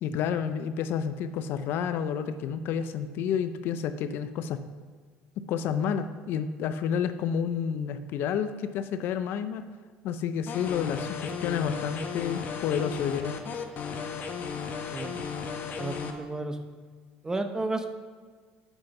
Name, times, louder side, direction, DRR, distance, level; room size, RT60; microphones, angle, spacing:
voice 1, 0.0-4.6 5.5-9.6 10.0-13.4, left 8 dB, 65° left, 11 dB, 0.5 m, -30 dB
sound 1, 10.5-16.1, left 6 dB, 50° left, 1.0 m, -35 dB
voice 2, 14.9-15.3 15.8-16.6 17.2-17.9, right 2 dB, 15° right, 7 dB, 0.9 m, -32 dB
7.8 x 5.9 x 5.8 m, 1.5 s
supercardioid pair, 95°, 4 cm